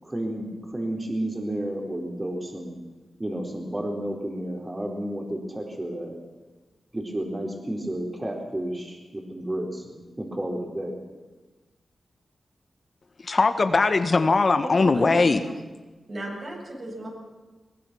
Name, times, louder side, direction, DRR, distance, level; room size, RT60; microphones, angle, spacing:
voice 1, 0.0-2.7 3.2-6.2 6.9-11.0, right 1 dB, 25° right, 1 dB, 4.4 m, -31 dB
voice 2, 13.2-15.4, left 3 dB, 45° left, 8 dB, 1.3 m, -20 dB
voice 3, 14.6-15.5 16.1-17.2, right 1 dB, 45° right, -1 dB, 7.9 m, -36 dB
22.0 x 20.5 x 6.3 m, 1.2 s
wide cardioid pair, 80°, 0 cm